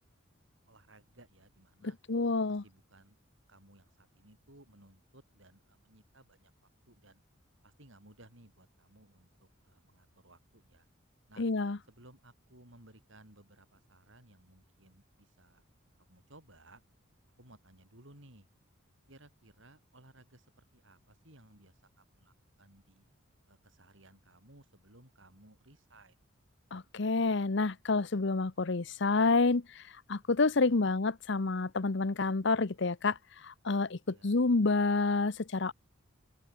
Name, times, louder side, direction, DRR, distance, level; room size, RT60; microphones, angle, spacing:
voice 1, 0.7-2.0 2.5-3.2 3.5-6.5 6.9-7.2 7.6-10.9 11.3-11.5 11.9-15.6 16.0-16.8 17.4-18.5 19.1-23.1 23.5-26.2 30.5-30.9 34.1-34.4, right 1 dB, 65° right, 6.3 m, -60 dB
voice 2, 2.1-2.6 11.4-11.8 26.7-29.8 30.1-33.2 33.4-35.7, left 3 dB, 55° left, 0.8 m, -28 dB
open air
head